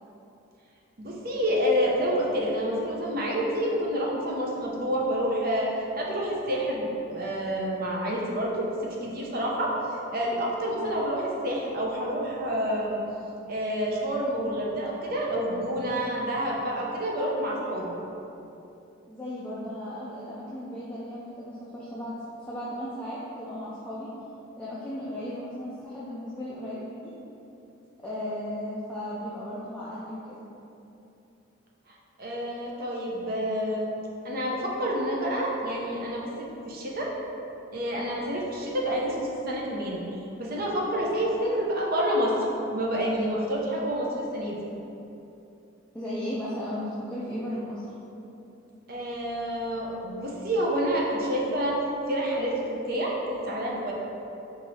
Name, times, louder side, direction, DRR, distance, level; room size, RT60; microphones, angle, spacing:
voice 1, 1.0-5.7 6.0-13.0 13.5-17.9 32.2-33.9 34.2-36.3 36.6-37.1 37.7-40.0 40.4-42.4 42.7-44.6 48.9-51.8 52.1-53.9, equal, 45° right, -3 dB, 0.6 m, -28 dB
voice 2, 19.1-22.2 22.5-24.1 24.6-27.1 28.0-30.5 45.9-47.9, equal, 5° left, -10 dB, 0.5 m, -35 dB
4.6 x 2.7 x 4.2 m, 2.8 s
head